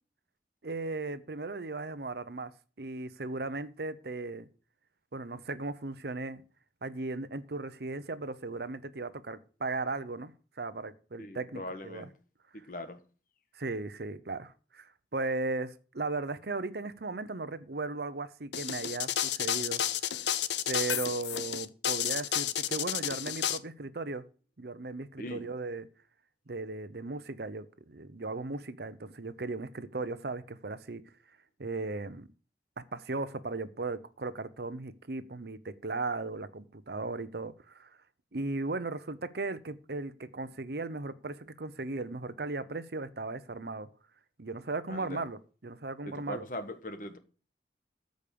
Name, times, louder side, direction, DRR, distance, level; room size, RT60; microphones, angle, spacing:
voice 1, 0.6-2.5 2.8-4.5 5.1-6.4 6.8-10.3 10.6-12.1 13.5-19.8 20.1-20.3 20.7-24.2 24.6-25.9 26.5-31.0 31.6-32.3 32.9-37.9 38.3-43.9 44.4-46.4, right 3 dB, 65° right, 0.8 m, -37 dB
voice 2, 11.2-12.1 12.5-13.0 25.2-25.5 44.9-45.3 46.0-47.2, left 1 dB, 50° left, 1.4 m, -41 dB
sound 1, 18.5-23.6, left 10 dB, 90° left, 0.7 m, -31 dB
13.5 x 5.3 x 6.9 m
head